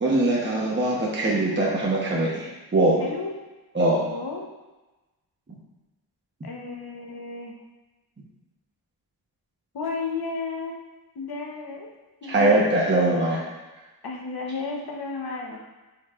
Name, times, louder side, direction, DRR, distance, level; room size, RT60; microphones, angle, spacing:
voice 1, 0.0-3.0 3.7-4.0 12.3-13.4, right 2 dB, 30° right, -5 dB, 1.1 m, -22 dB
voice 2, 3.0-3.3 4.1-4.5 6.4-7.5 9.7-10.8 11.1-11.9 12.2-12.6 14.0-15.6, left 4 dB, 65° left, 0 dB, 1.0 m, -33 dB
9.0 x 4.6 x 2.5 m, 1.1 s
wide cardioid pair, 130°, 39 cm